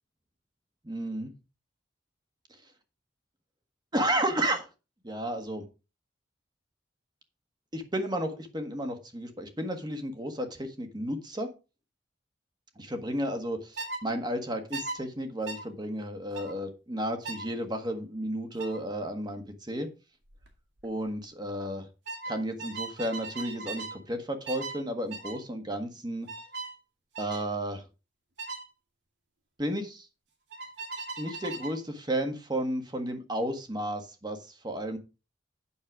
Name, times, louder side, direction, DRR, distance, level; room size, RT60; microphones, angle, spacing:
voice 1, 0.8-1.3 3.9-4.7 5.0-5.6 7.7-11.5 12.8-19.9 20.8-21.9 22.3-26.3 27.2-27.8 29.6-30.1 31.2-35.0, right 1 dB, 25° right, 6 dB, 1.5 m, -32 dB
sound 1, 13.8-14.0 14.7-15.0 15.5-15.6 16.3-16.5 17.2-17.5 18.6-18.8 20.3-20.5 20.8-21.1 22.1-24.0 24.5-24.8 25.1-25.4 26.3-26.7 27.1-27.5 28.4-28.6 30.5-31.8, right 3 dB, 75° right, 2.3 m, -38 dB
8.6 x 6.6 x 4.8 m, 0.30 s
head